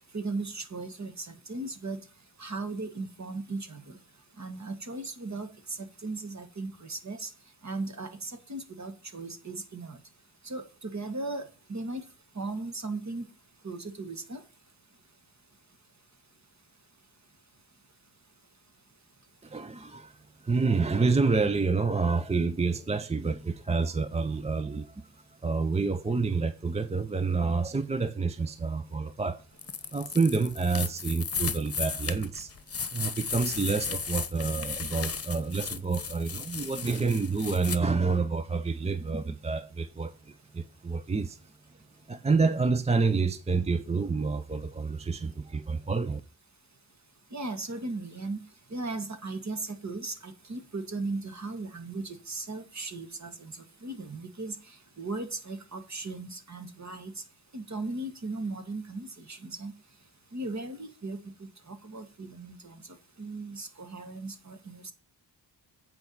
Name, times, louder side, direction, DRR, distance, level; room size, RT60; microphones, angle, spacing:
voice 1, 0.1-2.0 2.4-4.0 4.4-7.3 7.6-10.0 10.4-11.4 11.7-12.0 12.4-13.3 13.6-14.4 47.3-48.4 48.7-53.5 53.8-57.2 57.5-59.7 60.3-62.8 63.2-64.9, right 3 dB, 40° right, 1.8 m, -37 dB
voice 2, 19.4-20.2 20.4-25.0 25.4-29.4 29.9-32.5 32.9-41.4 42.1-46.2, right 4 dB, 15° right, 0.5 m, -28 dB
sound 1, 29.6-37.8, left 5 dB, 35° left, 1.1 m, -35 dB
8.7 x 4.7 x 7.0 m
wide cardioid pair, 100°, 44 cm